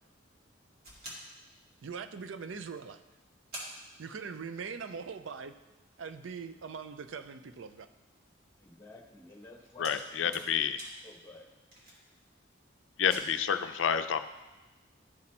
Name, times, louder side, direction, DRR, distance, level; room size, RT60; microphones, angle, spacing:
sound 1, 0.8-2.2 2.8-2.9 3.1-3.2 3.5-4.7 5.0-5.1 5.7-12.5 12.9-13.2, right 1 dB, 50° right, 2.2 m, -50 dB
voice 1, 1.8-3.0 4.0-5.5 6.0-7.9, right 5 dB, 75° right, 10 dB, 0.5 m, -41 dB
voice 2, 8.6-10.5 11.0-11.5, left 2 dB, 15° left, 1 dB, 1.1 m, -52 dB
voice 3, 9.8-10.8 13.0-14.2, left 8 dB, 70° left, 10 dB, 0.4 m, -29 dB
12.0 x 4.2 x 4.3 m, 1.1 s
head